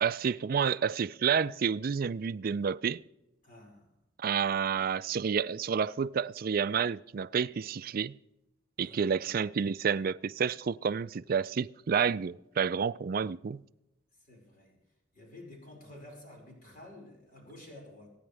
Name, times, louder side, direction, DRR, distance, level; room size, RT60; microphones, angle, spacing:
voice 1, 0.0-3.0 4.2-8.2 8.8-13.6, right 6 dB, 50° right, 0.4 m, -30 dB
voice 2, 3.4-3.9 8.8-9.2 14.2-14.8 15.1-18.1, left 1 dB, 45° left, 5.2 m, -51 dB
25.0 x 9.7 x 3.4 m
head